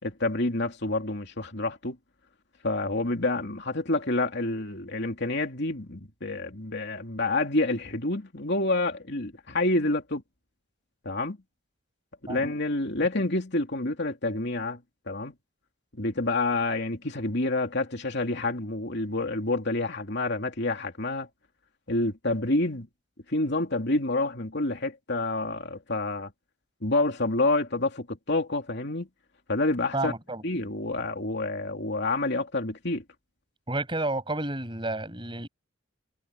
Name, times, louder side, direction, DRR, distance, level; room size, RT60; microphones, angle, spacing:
voice 1, 0.0-2.0 2.6-10.2 11.0-11.4 12.2-14.8 15.1-15.3 16.0-21.3 21.9-22.9 23.3-26.3 26.8-29.1 29.5-30.1 30.4-33.0, left 2 dB, 55° left, 3.0 m, -28 dB
voice 2, 29.9-30.4 33.7-35.5, right 2 dB, 25° right, 7.1 m, -30 dB
head